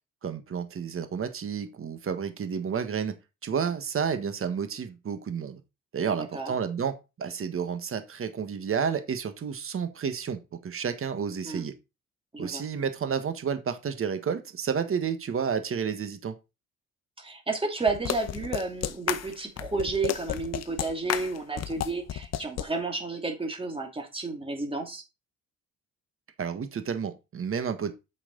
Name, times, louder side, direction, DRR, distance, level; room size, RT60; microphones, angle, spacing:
voice 1, 0.2-3.1 3.4-5.6 5.9-11.7 12.4-16.4 26.4-27.9, right 7 dB, 45° right, 9 dB, 1.5 m, -31 dB
voice 2, 6.1-6.5 11.4-11.7 12.3-12.7 17.2-25.0, right 3 dB, 20° right, 3 dB, 2.7 m, -31 dB
sound 1, 17.9-22.7, left 11 dB, 60° left, 0.8 m, -32 dB
8.3 x 5.9 x 4.0 m, 0.26 s
cardioid pair, 90°, 30 cm